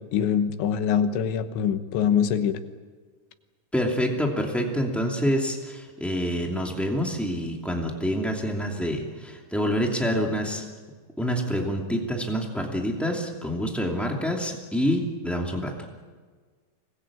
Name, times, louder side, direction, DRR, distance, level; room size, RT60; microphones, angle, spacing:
voice 1, 0.0-2.6, left 8 dB, 75° left, 9 dB, 3.3 m, -24 dB
voice 2, 3.7-10.6 11.2-15.7, equal, ahead, 0 dB, 0.3 m, -27 dB
26.0 x 20.5 x 8.6 m, 1.5 s
omnidirectional pair, 5.6 m